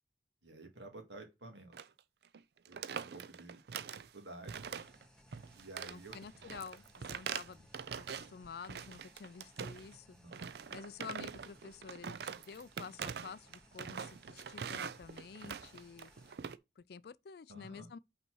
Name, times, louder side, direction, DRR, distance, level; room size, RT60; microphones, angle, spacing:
voice 1, 0.4-1.8 2.7-4.7 5.6-6.2 7.5-7.6 10.1-10.4 17.5-17.9, right 2 dB, 80° right, 2.0 m, -52 dB
sound 1, 1.7-2.0 2.2-2.4 2.7-4.1 4.5-5.0 5.3-8.3 8.6-10.0 10.3-16.6, right 7 dB, 60° right, 0.4 m, -43 dB
sound 2, 4.6-16.4, left 1 dB, 5° left, 0.7 m, -64 dB
voice 2, 5.8-7.7 8.0-10.2 10.7-16.1 16.8-18.0, left 5 dB, 60° left, 0.4 m, -50 dB
5.5 x 4.2 x 6.2 m
head